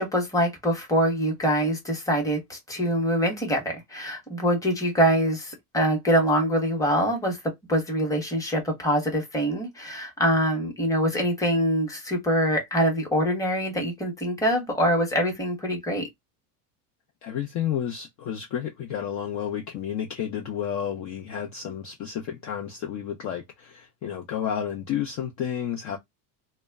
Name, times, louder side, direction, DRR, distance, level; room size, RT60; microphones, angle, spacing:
voice 1, 0.0-7.4 7.7-16.1, equal, 5° left, 0.9 m, -24 dB
voice 2, 17.2-26.0, left 9 dB, 40° left, 0.5 m, -31 dB
2.1 x 2.1 x 3.3 m
supercardioid pair, 135°, 48 cm